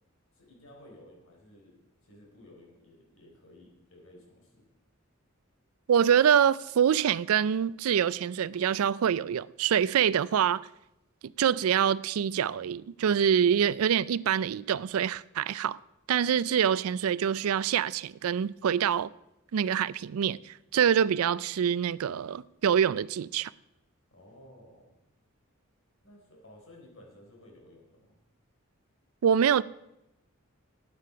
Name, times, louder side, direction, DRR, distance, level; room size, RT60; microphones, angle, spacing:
voice 1, 0.3-4.6 24.1-25.0 26.0-28.1, left 1 dB, 65° left, 4.0 m, -54 dB
voice 2, 5.9-10.7 11.2-15.8 16.1-19.1 19.5-23.5 29.2-29.6, right 8 dB, 85° right, 0.4 m, -25 dB
13.0 x 9.3 x 5.7 m
head